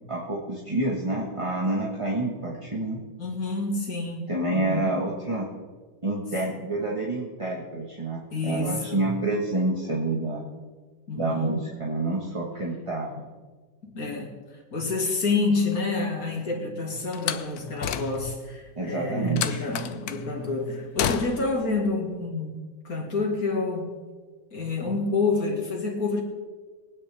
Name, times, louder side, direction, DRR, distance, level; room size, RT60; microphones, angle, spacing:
voice 1, 0.1-3.0 4.3-5.5 6.0-10.4 11.1-13.2 18.8-19.6, right 2 dB, 20° right, -3 dB, 1.2 m, -28 dB
voice 2, 3.2-4.9 6.5-6.6 8.3-9.1 11.1-11.6 13.8-14.4 14.7-23.9 24.5-26.2, left 3 dB, 50° left, 0 dB, 2.6 m, -28 dB
Slam, 17.1-18.5 19.4-20.3 21.0-21.6, left 9 dB, 70° left, 1.0 m, -31 dB
23.0 x 9.5 x 3.4 m, 1.4 s
omnidirectional pair, 2.0 m